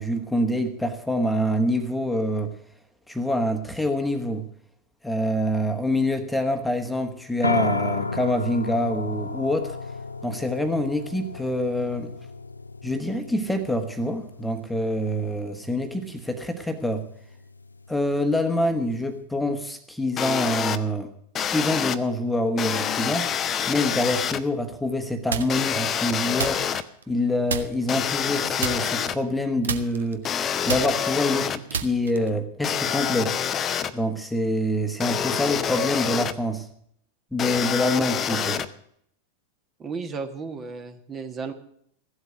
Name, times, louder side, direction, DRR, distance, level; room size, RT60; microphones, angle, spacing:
voice 1, 0.0-2.5 3.1-4.4 5.0-9.8 10.2-12.1 12.8-17.0 17.9-21.1 21.5-23.3 23.7-26.6 27.1-30.2 30.6-33.4 33.9-36.7 37.3-38.6, left 1 dB, 5° left, 6 dB, 1.3 m, -26 dB
sound 1, 7.4-19.2, left 3 dB, 80° left, 0.6 m, -34 dB
sound 2, 20.2-20.8 21.3-22.0 22.6-24.4 25.5-26.8 27.9-29.2 30.2-31.6 32.6-33.9 35.0-36.3 37.4-38.7, left 8 dB, 25° left, 0.8 m, -26 dB
sound 3, 25.3-25.8 26.4-27.2 27.5-28.0 28.6-29.4 29.6-32.4, right 6 dB, 65° right, 1.0 m, -31 dB
voice 2, 39.8-41.5, right 4 dB, 25° right, 7 dB, 1.4 m, -34 dB
15.5 x 8.1 x 7.7 m, 0.67 s
figure-of-eight pair, 90°, 0 cm